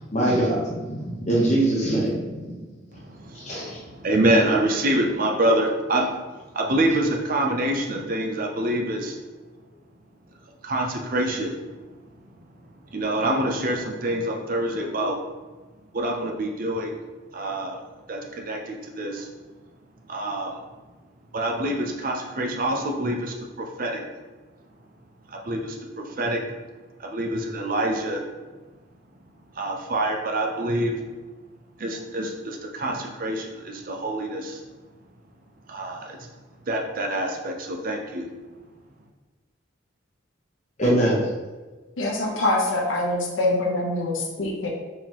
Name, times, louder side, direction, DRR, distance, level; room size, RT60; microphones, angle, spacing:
voice 1, 0.1-2.5 3.3-3.8 40.8-41.2, right 1 dB, 35° left, -4 dB, 1.0 m, -23 dB
voice 2, 3.1-6.0 6.5-9.2 10.6-11.5 12.9-15.2 15.9-16.9 17.3-17.8 18.1-18.2 18.5-19.3 20.1-20.6 21.3-23.3 23.8-24.0 25.3-26.4 27.0-28.2 29.6-31.0 31.8-34.6 35.7-36.2 36.7-38.3, right 1 dB, 45° right, 1 dB, 0.6 m, -26 dB
voice 3, 42.0-44.7, left 2 dB, 85° left, -1 dB, 0.8 m, -24 dB
4.5 x 3.6 x 3.0 m, 1.3 s
head